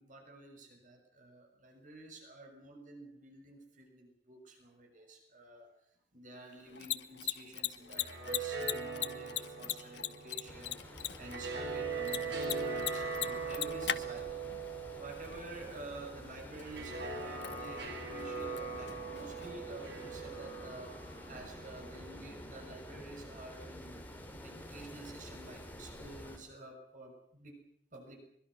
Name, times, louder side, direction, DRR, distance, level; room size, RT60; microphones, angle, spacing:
voice 1, 0.0-5.7 6.1-14.4 15.0-24.0 24.4-27.6 27.9-28.2, right 2 dB, 50° right, 2 dB, 6.7 m, -50 dB
Mechanisms, 6.6-20.2, left 11 dB, 75° left, 1.3 m, -42 dB
sound 1, 7.8-23.0, right 4 dB, 75° right, 7.5 m, -41 dB
sound 2, 10.5-26.4, equal, 10° left, 5.1 m, -50 dB
24.0 x 23.5 x 6.4 m, 0.72 s
head